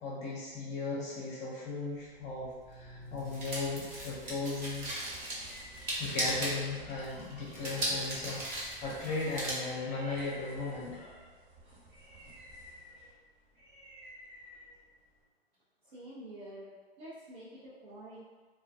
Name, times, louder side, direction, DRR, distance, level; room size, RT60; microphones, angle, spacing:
voice 1, 0.0-4.9 5.9-11.2, left 3 dB, 20° left, -5 dB, 0.6 m, -37 dB
sound 1, 2.0-9.5, right 1 dB, 25° right, 0.7 m, -39 dB
sound 2, 4.6-15.2, right 1 dB, 45° right, 1.2 m, -52 dB
voice 2, 15.8-18.4, right 1 dB, 80° right, -9 dB, 0.8 m, -48 dB
2.3 x 2.2 x 2.6 m, 1.4 s
hypercardioid pair, 110°, 31 cm